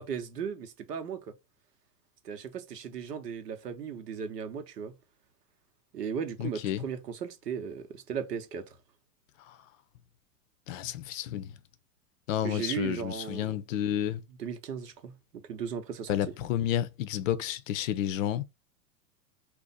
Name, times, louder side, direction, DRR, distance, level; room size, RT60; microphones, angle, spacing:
voice 1, 0.0-1.3 2.2-4.9 5.9-8.6 12.4-13.6 14.4-15.1 15.5-16.1, right 7 dB, 85° right, 0.8 m, -36 dB
voice 2, 6.4-6.8 9.5-9.6 10.7-11.5 12.3-14.2 16.1-18.4, left 11 dB, 55° left, 0.5 m, -31 dB
2.5 x 2.1 x 4.0 m
hypercardioid pair, 110°, 47 cm